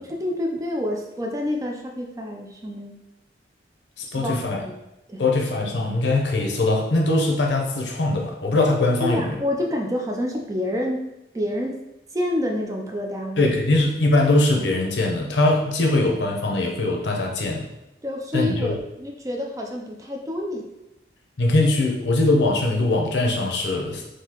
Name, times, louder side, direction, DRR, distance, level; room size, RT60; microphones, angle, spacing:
voice 1, 0.0-3.0 4.1-4.3 4.6-4.7 5.1-5.2 9.0-11.1 11.3-11.8 12.1-13.5 18.0-20.7, left 1 dB, 20° right, 1 dB, 0.4 m, -28 dB
voice 2, 4.0-4.7 5.2-9.3 13.4-17.7 18.3-18.8 21.4-24.0, left 2 dB, 80° left, 0 dB, 0.7 m, -21 dB
3.8 x 2.7 x 2.9 m, 0.90 s
head